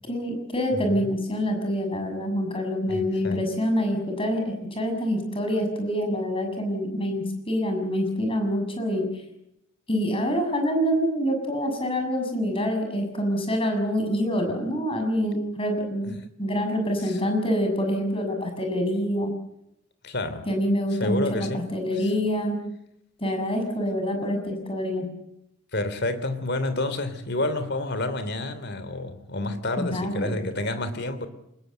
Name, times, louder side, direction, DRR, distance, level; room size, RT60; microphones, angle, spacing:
voice 1, 0.1-9.1 9.9-16.1 16.4-19.3 20.5-22.6 23.2-25.1 29.8-30.3, equal, 25° left, 6.9 m, -26 dB
voice 2, 0.7-1.1 2.9-3.5 16.1-16.3 17.0-17.2 20.0-20.5 21.0-21.7 21.9-22.1 25.7-31.3, left 2 dB, 55° left, 3.0 m, -29 dB
25.5 x 21.0 x 7.8 m
head